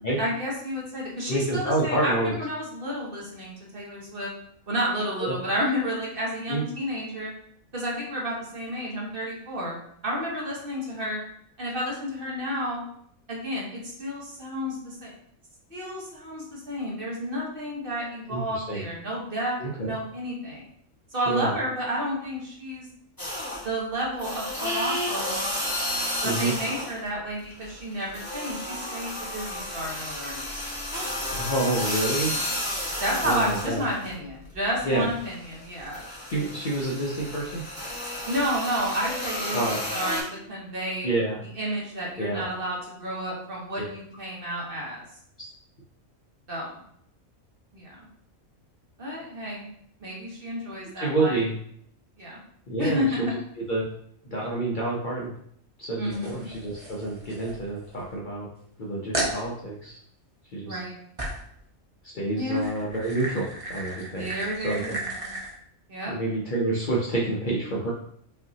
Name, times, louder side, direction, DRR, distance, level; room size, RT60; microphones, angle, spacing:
voice 1, 0.2-4.3 4.7-7.3 7.7-9.8 10.0-11.2 11.6-12.8 13.3-15.1 15.7-20.7 21.1-22.8 23.6-25.5 26.2-30.6 33.0-36.0 38.2-41.1 41.6-45.0 46.5-46.8 47.7-48.0 49.0-49.7 50.0-51.4 52.2-52.4 52.8-53.3 56.0-56.5 60.6-60.9 62.3-62.7 64.1-65.4 65.9-66.1, equal, 45° right, -4 dB, 1.2 m, -31 dB
voice 2, 1.3-2.3 5.2-5.4 6.5-6.6 18.3-18.8 19.6-19.9 21.3-21.5 26.2-26.5 31.3-32.3 33.2-33.8 34.8-35.1 36.3-37.6 39.5-39.8 41.0-41.4 42.2-42.4 43.8-43.9 51.0-51.5 52.7-53.3 53.6-53.9 54.2-55.3 55.8-58.5 58.8-60.0 60.5-60.8 62.1-64.3 64.6-64.8 66.1-67.9, right 2 dB, 50° left, -4 dB, 0.7 m, -28 dB
sound 1, 23.2-23.8 24.2-27.1 27.4-34.1 34.5-40.2, left 1 dB, 15° left, 1.5 m, -32 dB
sound 2, 56.1-58.2 58.6-58.7 59.1-59.4 61.2-61.5 62.3-65.5, right 1 dB, 30° right, 0.8 m, -35 dB
5.4 x 2.8 x 2.7 m, 0.68 s
omnidirectional pair, 1.4 m